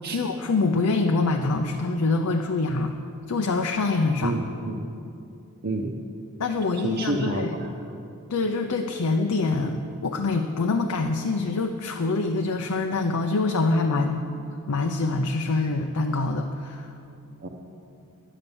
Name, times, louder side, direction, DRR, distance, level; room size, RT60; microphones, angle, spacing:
voice 1, 0.1-3.0 3.3-4.3 6.4-7.6 8.3-14.3 14.7-16.9, left 3 dB, 85° left, 4 dB, 0.6 m, -25 dB
voice 2, 4.2-4.8 5.6-5.9 6.8-7.7 17.4-17.5, right 2 dB, 50° right, -1 dB, 0.8 m, -29 dB
11.0 x 10.0 x 7.0 m, 2.6 s
head